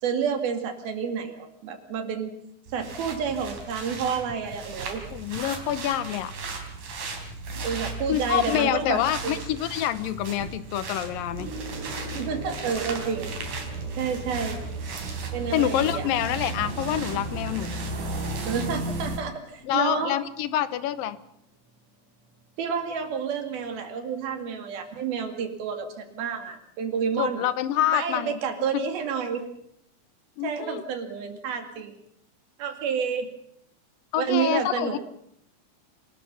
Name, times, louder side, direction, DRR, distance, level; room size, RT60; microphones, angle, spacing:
voice 1, 0.0-2.3 2.7-5.1 7.6-9.4 12.1-13.3 14.0-14.6 15.3-16.1 18.5-20.1 22.6-27.5 27.9-29.4 30.4-32.0 32.6-33.3 34.2-35.0, right 6 dB, 90° right, 6 dB, 4.3 m, -29 dB
sound 1, 2.7-19.2, right 3 dB, 60° right, 5.0 m, -35 dB
voice 2, 5.1-6.3 8.1-11.5 15.5-17.8 19.6-21.2 27.2-28.4 28.7-28.8 30.4-30.8 34.1-35.0, left 12 dB, 75° left, 15 dB, 2.6 m, -26 dB
Gong, 11.4-21.1 22.1-22.3, equal, 40° right, 9.0 m, -45 dB
26.5 x 19.5 x 5.7 m, 0.75 s
omnidirectional pair, 4.2 m